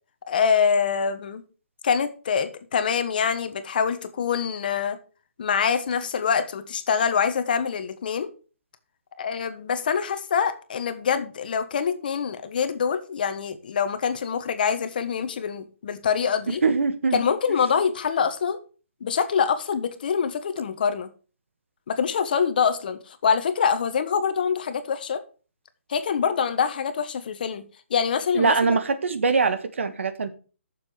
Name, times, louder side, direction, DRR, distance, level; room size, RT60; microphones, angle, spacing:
voice 1, 0.3-1.4 1.8-5.0 5.4-8.3 9.2-16.6 17.1-18.6 19.0-21.1 21.9-25.2 25.9-28.8, left 6 dB, 45° left, 10 dB, 1.3 m, -25 dB
voice 2, 16.6-17.2 28.3-30.3, right 4 dB, 75° right, 10 dB, 1.6 m, -22 dB
7.5 x 6.9 x 7.5 m, 0.37 s
hypercardioid pair, 170°, 7 cm